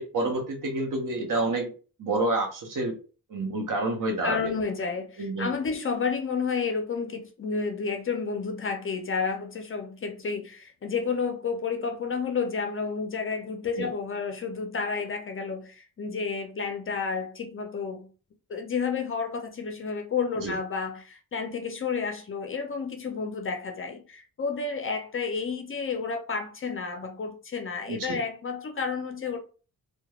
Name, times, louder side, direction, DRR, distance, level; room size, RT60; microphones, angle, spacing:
voice 1, 0.0-1.7 2.0-2.9 3.3-4.5 5.2-5.5 13.8-13.9 20.4-20.5 27.9-28.2, right 2 dB, 60° right, 0.8 m, -28 dB
voice 2, 4.2-18.1 18.5-29.4, left 5 dB, 40° left, 0.4 m, -31 dB
3.0 x 2.2 x 2.3 m
wide cardioid pair, 140°, 35 cm